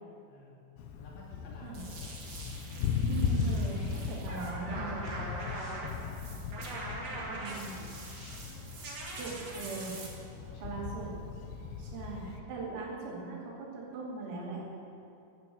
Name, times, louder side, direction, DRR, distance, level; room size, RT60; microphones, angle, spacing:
voice 1, 0.3-0.7 1.0-2.2 4.3-4.7 5.8-6.3 6.6-7.9 10.3-10.9 11.8-12.3, left 2 dB, 65° left, -3 dB, 4.7 m, -53 dB
Thunder, 0.8-12.4, left 6 dB, 85° left, 2.2 m, -37 dB
sound 1, 1.7-10.1, right 2 dB, 45° right, 2.6 m, -43 dB
sound 2, 2.9-3.6 3.9-4.2 4.5-4.6 5.0-6.9 7.2-7.3 7.6-8.7 9.0-9.1, equal, 20° left, 4.2 m, -57 dB
voice 2, 3.1-5.2 7.3-7.7 9.2-9.9 10.5-11.1 11.8-14.6, right 4 dB, 85° right, -4 dB, 5.6 m, -40 dB
13.0 x 11.0 x 8.0 m, 2.7 s
omnidirectional pair, 5.9 m